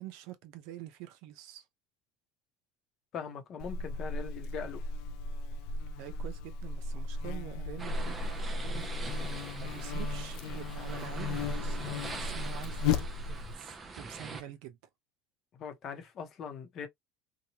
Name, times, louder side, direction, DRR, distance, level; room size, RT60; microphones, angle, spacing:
voice 1, 0.0-1.7 5.6-5.7 6.0-8.2 8.5-14.8, right 12 dB, 65° right, 0.6 m, -46 dB
voice 2, 3.1-4.8 15.6-16.9, left 7 dB, 35° left, 0.8 m, -41 dB
Buzz, 3.6-13.6, left 3 dB, 60° left, 0.4 m, -35 dB
sound 1, 7.8-14.4, right 4 dB, 15° right, 0.5 m, -44 dB
2.9 x 2.2 x 2.8 m
cardioid pair, 160°, 0 cm